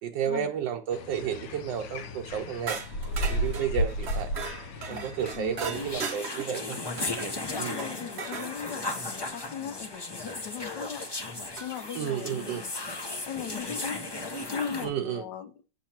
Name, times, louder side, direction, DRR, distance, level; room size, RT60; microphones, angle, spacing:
voice 1, 0.0-2.8 3.3-4.3 4.9-6.8 7.6-7.8 12.0-12.6 14.8-15.2, right 8 dB, 80° right, 1.3 m, -32 dB
sound 1, 0.9-6.0, equal, 90° left, 1.5 m, -33 dB
sound 2, 2.7-8.5 10.5-10.6 11.6-12.0, right 5 dB, 50° right, 0.8 m, -38 dB
voice 2, 4.8-5.1 5.3-5.9 7.4-11.1 11.6-12.7 13.2-14.0 14.5-15.5, left 8 dB, 75° left, 1.2 m, -38 dB
sound 3, 5.7-14.9, left 2 dB, 30° left, 0.4 m, -36 dB
7.4 x 7.1 x 2.9 m
omnidirectional pair, 2.0 m